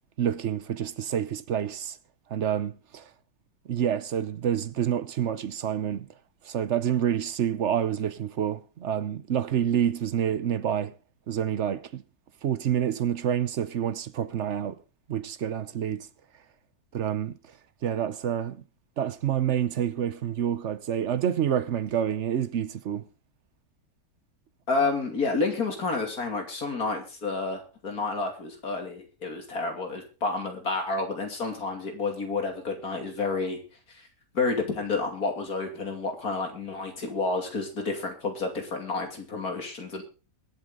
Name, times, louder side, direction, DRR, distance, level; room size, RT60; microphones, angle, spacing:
voice 1, 0.2-2.0 2.3-3.1 3.7-6.1 6.4-10.9 11.3-12.0 12.4-14.8 15.1-16.1 16.9-17.5 17.8-18.6 19.0-23.1, right 9 dB, 55° right, 0.9 m, -28 dB
voice 2, 24.7-33.6 33.9-34.1 34.3-40.0, left 3 dB, 60° left, 3.2 m, -30 dB
22.5 x 8.0 x 3.9 m
omnidirectional pair, 1.8 m